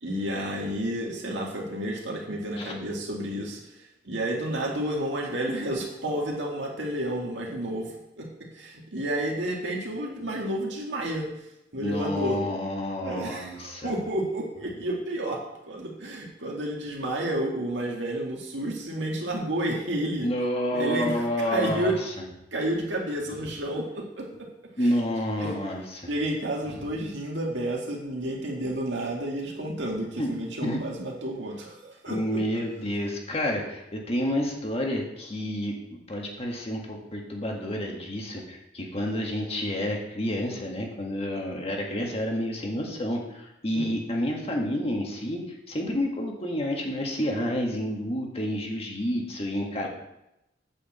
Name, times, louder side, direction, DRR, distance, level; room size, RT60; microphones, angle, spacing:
voice 1, 0.0-3.7 4.0-8.3 8.5-11.3 11.7-12.4 13.0-15.4 15.7-20.3 20.7-22.0 22.5-24.3 24.8-24.9 25.4-25.6 26.1-32.4 43.7-43.9, right 1 dB, 75° right, -1 dB, 2.1 m, -31 dB
voice 2, 11.8-13.9 20.2-21.9 23.3-23.4 24.8-26.1 26.7-26.9 30.2-30.3 30.6-30.8 32.1-35.7 36.1-45.4 45.7-49.9, equal, 35° left, 0 dB, 1.7 m, -29 dB
8.7 x 5.0 x 7.3 m, 0.87 s
head